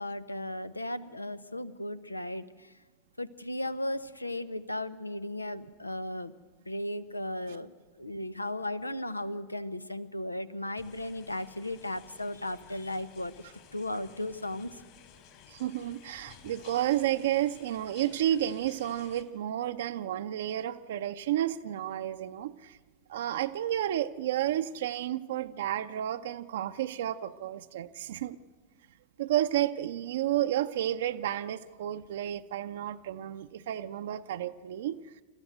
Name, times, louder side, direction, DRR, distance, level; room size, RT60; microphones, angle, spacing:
voice 1, 0.0-2.7 3.2-6.3 6.7-13.3 13.7-14.8, left 1 dB, 85° left, 15 dB, 0.8 m, -36 dB
sound 1, 10.8-19.2, left 9 dB, 45° left, 3.3 m, -55 dB
voice 2, 15.5-22.8 23.1-28.4 29.2-35.0, right 12 dB, 60° right, 8 dB, 0.7 m, -31 dB
28.0 x 14.0 x 8.0 m, 1.4 s
figure-of-eight pair, 90°, 0 cm